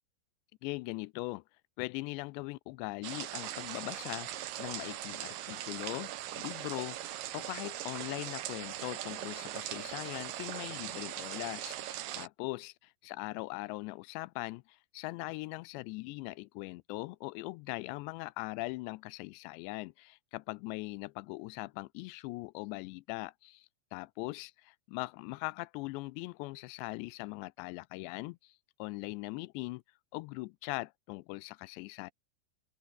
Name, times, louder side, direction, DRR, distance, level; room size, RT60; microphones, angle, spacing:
voice 1, 0.6-1.4 1.8-12.7 13.0-29.8 30.1-32.1, left 23 dB, 85° left, 2.6 m, -41 dB
sound 1, 3.0-12.3, right 13 dB, 80° right, 3.9 m, -40 dB
open air
omnidirectional pair, 5.3 m